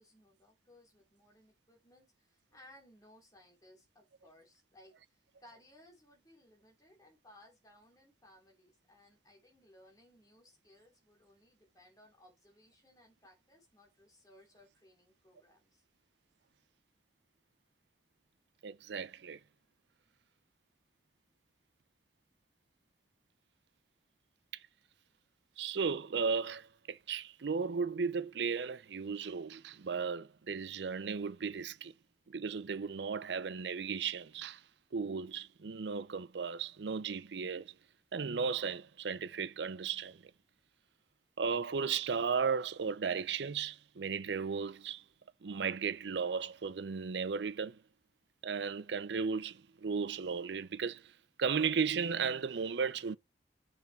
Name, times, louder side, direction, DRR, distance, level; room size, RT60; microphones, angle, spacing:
voice 1, 0.0-15.8, left 1 dB, 20° left, 2.9 m, -62 dB
voice 2, 18.6-19.4 25.6-31.9 32.3-34.6 34.9-37.7 38.1-40.2 41.4-45.0 45.4-47.8 48.4-51.0 51.4-53.2, right 5 dB, 80° right, 0.5 m, -35 dB
7.0 x 6.4 x 4.1 m
head